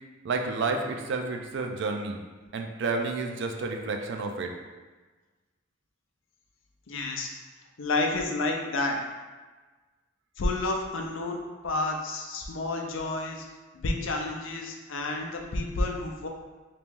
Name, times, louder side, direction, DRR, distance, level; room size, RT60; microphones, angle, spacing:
voice 1, 0.2-2.2 2.5-4.5, right 3 dB, 65° right, 3 dB, 0.4 m, -30 dB
voice 2, 6.9-7.3 7.8-9.0 10.4-13.5 13.7-16.3, left 2 dB, 75° left, 2 dB, 0.5 m, -30 dB
2.9 x 2.9 x 3.5 m, 1.3 s
head